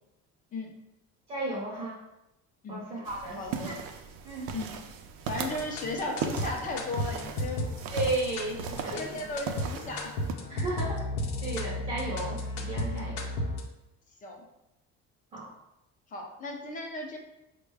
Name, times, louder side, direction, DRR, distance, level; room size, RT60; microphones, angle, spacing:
voice 1, 1.3-2.0 2.7-3.7 4.2-4.5 7.9-9.0 10.5-11.1 11.4-13.2 15.3-15.5, right 2 dB, 25° right, -5 dB, 0.6 m, -34 dB
sound 1, 3.0-10.3, right 6 dB, 90° right, 0.5 m, -38 dB
voice 2, 3.4-3.7 4.5-4.8 5.2-7.7 8.9-10.1 12.9-13.1 14.2-14.5 16.1-17.2, left 2 dB, 25° left, 2 dB, 0.5 m, -36 dB
sound 2, 5.3-13.6, left 1 dB, 85° left, 0.7 m, -34 dB
4.6 x 2.2 x 3.3 m, 0.90 s
cardioid pair, 175°, 31 cm